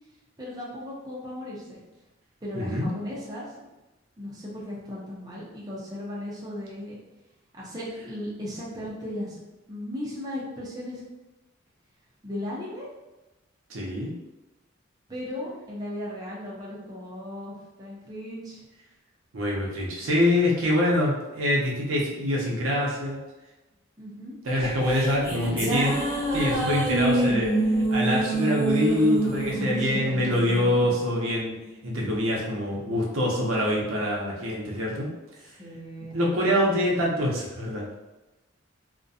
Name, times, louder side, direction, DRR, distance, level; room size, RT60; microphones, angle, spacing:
voice 1, 0.4-1.8 2.4-3.5 4.2-7.0 7.5-9.4 9.7-11.0 12.2-12.9 15.1-18.6 24.0-24.4 29.8-30.9 35.4-36.4, left 1 dB, 20° right, -7 dB, 0.6 m, -36 dB
voice 2, 2.5-2.9 13.7-14.1 19.3-23.2 24.4-26.0 26.3-27.6 27.9-31.6 31.8-35.1 36.1-37.8, left 1 dB, 80° right, -3 dB, 0.6 m, -25 dB
sound 1, 24.6-31.2, right 1 dB, 10° left, 0.8 m, -26 dB
2.5 x 2.2 x 2.6 m, 1.0 s
head